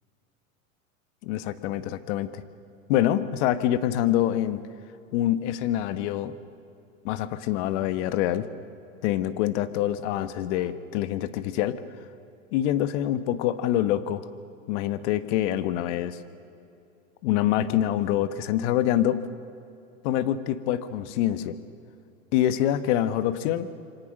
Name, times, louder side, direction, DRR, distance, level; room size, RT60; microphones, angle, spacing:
voice 1, 1.2-2.4 2.9-4.6 5.1-6.3 7.0-8.5 9.0-11.8 12.5-14.3 14.7-16.2 17.2-19.2 20.0-21.5 22.3-23.7, left 12 dB, 55° left, 12 dB, 1.5 m, -25 dB
27.5 x 24.5 x 6.6 m, 2.7 s
hypercardioid pair, 125°, 41 cm